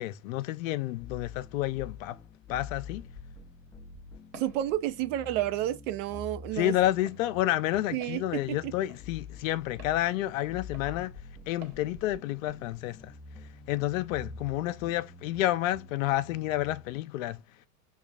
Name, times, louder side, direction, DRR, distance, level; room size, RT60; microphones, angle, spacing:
voice 1, 0.0-2.2 2.5-3.0 6.5-13.1 13.7-17.4, left 14 dB, 70° left, 0.6 m, -30 dB
sound 1, 1.0-16.9, left 4 dB, 5° left, 0.4 m, -47 dB
Walk footsteps, 4.3-4.6 5.2-5.4 6.1-6.3 7.0-7.2 8.0-8.2 8.9-9.0 9.8-10.0 10.7-10.9 11.6-11.8, right 2 dB, 40° right, 1.3 m, -49 dB
voice 2, 4.3-6.7 7.9-8.7, right 13 dB, 60° right, 0.7 m, -31 dB
6.0 x 2.4 x 2.3 m
hypercardioid pair, 105°, 41 cm